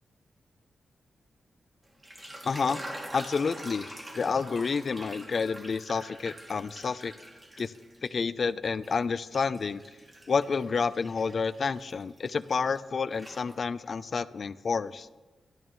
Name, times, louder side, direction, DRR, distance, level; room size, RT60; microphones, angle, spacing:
sound 1, 1.9-8.3 8.6-12.8 13.1-13.9, right 1 dB, 25° right, 2.7 m, -45 dB
voice 1, 2.4-2.8 3.1-7.1 7.6-7.7 8.0-9.8 10.3-15.1, left 5 dB, 55° left, 14 dB, 0.6 m, -29 dB
26.0 x 12.5 x 3.2 m, 1.2 s
cardioid pair, 85°, 0 cm